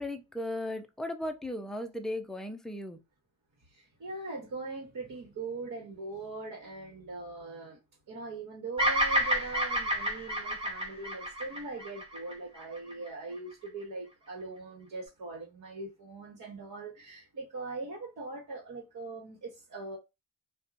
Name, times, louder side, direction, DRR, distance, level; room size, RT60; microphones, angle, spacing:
voice 1, 0.0-3.0, left 1 dB, ahead, 0.5 m, -36 dB
voice 2, 3.7-7.8 8.1-20.0, right 3 dB, 55° right, 1.2 m, -41 dB
Bird vocalization bird call bird song, 8.8-13.1, equal, 15° right, 1.2 m, -30 dB
2.7 x 2.3 x 2.4 m
cardioid pair, 70°, 39 cm